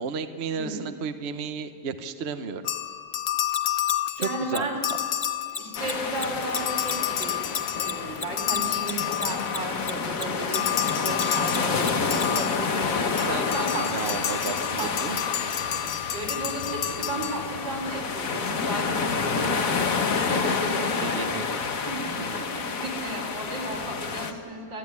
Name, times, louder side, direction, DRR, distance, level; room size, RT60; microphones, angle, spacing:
voice 1, 0.0-2.7 4.2-4.7 11.4-12.0 13.3-15.2 20.3-20.6 21.0-21.6 22.2-22.4, right 5 dB, 45° right, 9 dB, 1.0 m, -34 dB
voice 2, 0.5-0.9 4.2-4.8 5.5-7.4 7.7-10.7 11.0-13.9 14.7-14.9 16.1-21.2 21.7-24.8, right 2 dB, 80° right, 0 dB, 5.1 m, -34 dB
sound 1, 2.6-6.1 6.4-9.9 10.5-17.8, left 11 dB, 80° left, 1.6 m, -30 dB
Mechanisms, 3.5-10.2 10.5-12.2, left 4 dB, 30° left, 1.0 m, -33 dB
sound 2, 5.8-24.3, left 5 dB, 50° left, 1.6 m, -29 dB
29.5 x 13.5 x 9.6 m, 2.4 s
omnidirectional pair, 1.9 m